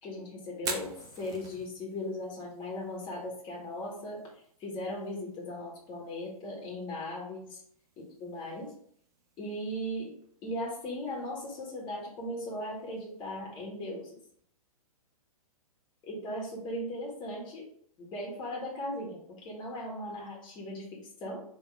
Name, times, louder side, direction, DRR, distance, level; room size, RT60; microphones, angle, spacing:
voice 1, 0.0-4.2 4.6-7.6 8.0-8.7 9.4-10.1 10.4-14.2 16.0-17.6 18.0-21.4, left 1 dB, 25° left, -2 dB, 1.4 m, -38 dB
Fire, 0.5-14.4, right 5 dB, 20° right, 0.5 m, -48 dB
3.6 x 2.8 x 4.7 m, 0.64 s
figure-of-eight pair, 115°, 19 cm